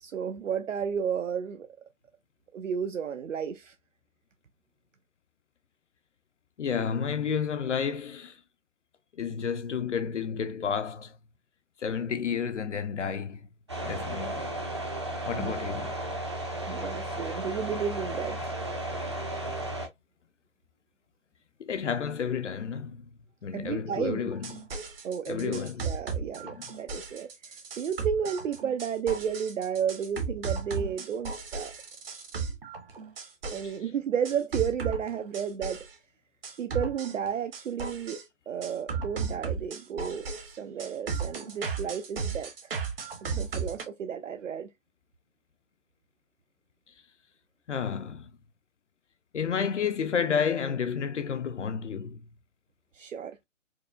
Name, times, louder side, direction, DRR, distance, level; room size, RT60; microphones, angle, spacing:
voice 1, 0.0-1.7 2.5-3.7 15.4-15.5 16.7-18.5 23.5-24.2 25.0-31.7 33.5-35.8 36.6-42.7 43.2-44.7 52.9-53.4, right 7 dB, 75° right, 0.5 m, -32 dB
voice 2, 6.6-8.4 9.2-11.2 11.8-13.5 13.8-14.5 15.3-15.9 21.7-23.1 23.4-24.6 25.3-25.9 26.4-26.7 33.6-33.7 47.7-48.3 49.3-52.2, left 7 dB, 65° left, 0.5 m, -31 dB
sound 1, 13.7-19.9, right 1 dB, 25° right, 0.4 m, -34 dB
sound 2, 24.3-33.8 34.3-35.9 36.4-38.2 38.6-43.8, right 5 dB, 45° right, 0.8 m, -35 dB
4.6 x 2.1 x 2.3 m
figure-of-eight pair, 135°, 38 cm